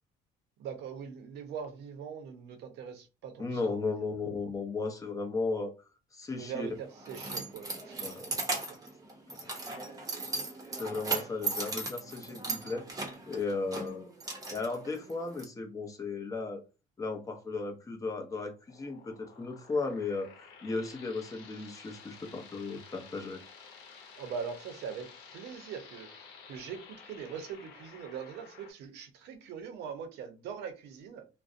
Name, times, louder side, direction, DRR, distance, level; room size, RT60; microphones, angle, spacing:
voice 1, 0.6-4.1 6.3-7.9 24.2-26.1 26.5-31.2, right 7 dB, 80° right, 0.6 m, -42 dB
voice 2, 3.4-5.7 6.1-6.7 8.0-8.3 9.3-9.5 10.7-12.9 13.3-14.1 14.5-16.6 17.0-20.3 20.6-23.4, left 3 dB, 20° left, 0.5 m, -35 dB
Keys jangling, 6.4-15.4, right 3 dB, 20° right, 0.7 m, -38 dB
sound 1, 18.7-28.7, left 5 dB, 85° left, 0.7 m, -52 dB
2.5 x 2.0 x 2.4 m
cardioid pair, 110°, 17 cm